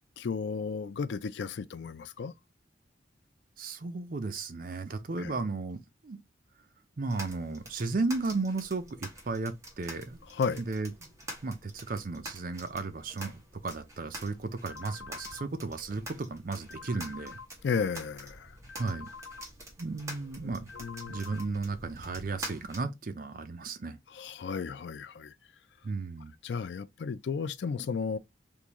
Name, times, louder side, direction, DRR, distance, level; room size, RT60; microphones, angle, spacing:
voice 1, 0.2-2.3 5.2-5.3 10.3-10.6 17.6-18.5 20.4-21.2 24.1-25.3 26.4-28.2, left 5 dB, 70° left, 0.4 m, -34 dB
voice 2, 3.6-6.2 7.0-10.2 10.6-11.1 11.4-17.4 18.8-19.1 19.8-20.7 21.1-24.0 25.8-26.3, right 3 dB, 50° right, 0.5 m, -34 dB
sound 1, 7.1-22.8, right 1 dB, 15° right, 1.1 m, -47 dB
sound 2, 14.7-15.5 16.7-17.5 18.7-19.5 20.7-21.5, left 5 dB, 85° left, 0.8 m, -46 dB
3.6 x 2.6 x 2.9 m
head